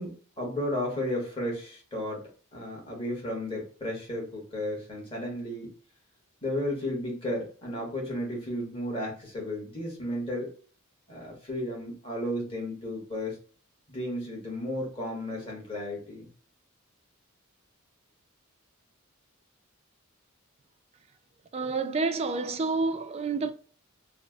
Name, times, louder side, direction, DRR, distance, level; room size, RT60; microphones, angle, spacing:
voice 1, 0.0-5.7 6.4-10.5 11.1-13.4 13.9-16.3, left 1 dB, 25° left, 1.3 m, -33 dB
voice 2, 21.5-23.5, right 4 dB, 30° right, 0.3 m, -29 dB
3.2 x 2.1 x 3.4 m
head